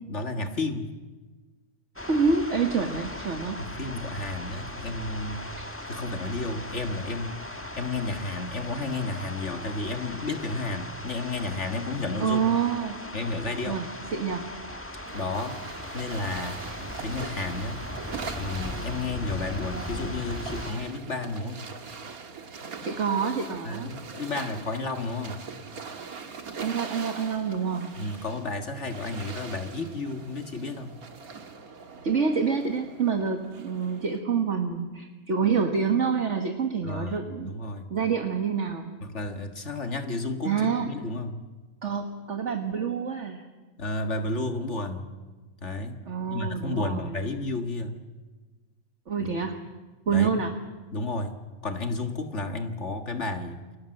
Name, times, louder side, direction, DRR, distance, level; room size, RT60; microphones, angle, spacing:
voice 1, 0.1-0.9 3.6-5.5 5.9-7.4 7.8-12.5 13.1-13.8 15.1-16.6 17.0-17.9 18.4-21.7 23.6-25.4 28.0-31.0 36.8-37.9 39.0-41.4 43.8-45.1 45.6-46.0 46.3-48.0 49.2-49.3 50.1-50.4 50.9-51.4 51.6-53.6, left 2 dB, 55° left, 6 dB, 2.0 m, -32 dB
sound 1, 2.0-20.7, left 1 dB, 10° left, 1.5 m, -38 dB
voice 2, 2.1-3.6 5.6-5.7 12.2-13.0 13.7-14.5 22.8-23.9 26.6-27.9 32.0-37.5 37.9-38.9 40.4-40.9 41.8-43.4 46.1-47.2 49.1-49.6 50.1-50.6, right 5 dB, 55° right, 4 dB, 1.9 m, -27 dB
sound 2, 15.0-34.2, right 5 dB, 90° right, 2.2 m, -42 dB
29.0 x 21.5 x 7.8 m, 1.3 s
omnidirectional pair, 1.5 m